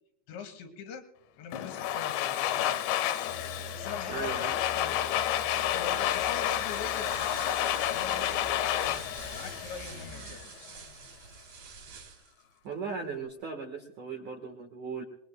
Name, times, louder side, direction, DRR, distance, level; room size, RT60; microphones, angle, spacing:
voice 1, 0.3-1.0 1.4-3.1 3.7-4.9 5.7-7.6 7.9-8.6 8.8-9.0 9.3-10.7, left 6 dB, 70° left, 6 dB, 3.2 m, -43 dB
Domestic sounds home sounds, 1.5-10.4, left 12 dB, 85° left, 2.6 m, -30 dB
sound 1, 3.3-10.4, right 2 dB, 65° right, 4.7 m, -47 dB
voice 2, 4.1-4.5 12.6-15.0, right 4 dB, 80° right, 3 dB, 1.7 m, -37 dB
sound 2, 5.6-12.4, right 5 dB, 50° right, 2.9 m, -48 dB
26.5 x 21.0 x 2.2 m, 0.87 s
omnidirectional pair, 5.9 m